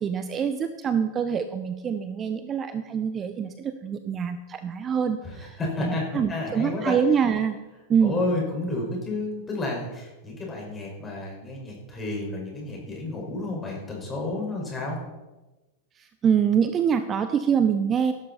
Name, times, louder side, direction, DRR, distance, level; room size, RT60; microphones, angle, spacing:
voice 1, 0.0-7.6 7.9-8.2 16.0-18.1, right 7 dB, 25° right, 10 dB, 0.8 m, -25 dB
voice 2, 5.2-6.9 8.0-15.0, left 2 dB, 20° left, -1 dB, 5.7 m, -31 dB
17.0 x 12.0 x 4.4 m, 1.1 s
figure-of-eight pair, 90°, 0 cm